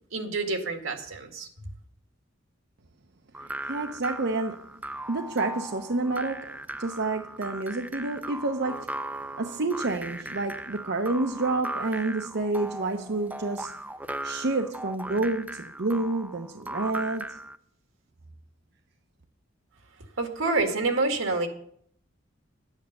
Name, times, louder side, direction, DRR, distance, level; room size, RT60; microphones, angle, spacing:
voice 1, 0.1-1.5 20.2-21.5, right 3 dB, 80° right, 2.0 m, -27 dB
Jaw Harp, 3.3-17.6, right 1 dB, 10° right, 0.5 m, -38 dB
voice 2, 3.4-4.7 5.1-9.1 9.4-13.7 14.2-17.4, right 2 dB, 55° right, 0.7 m, -29 dB
11.5 x 9.1 x 6.6 m
head